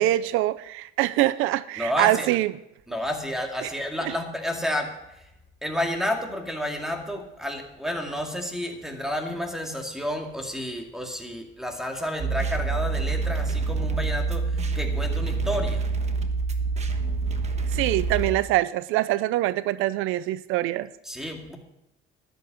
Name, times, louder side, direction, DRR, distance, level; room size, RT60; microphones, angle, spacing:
voice 1, 0.0-2.5 3.6-3.7 17.7-20.9, right 15 dB, 80° right, 17 dB, 0.5 m, -24 dB
voice 2, 1.8-2.3 2.9-5.3 5.6-15.8 21.0-21.6, left 1 dB, ahead, 3 dB, 2.2 m, -30 dB
sound 1, 12.2-18.3, right 4 dB, 35° right, 1.2 m, -26 dB
13.5 x 10.5 x 5.2 m, 0.88 s
cardioid pair, 130°, 21 cm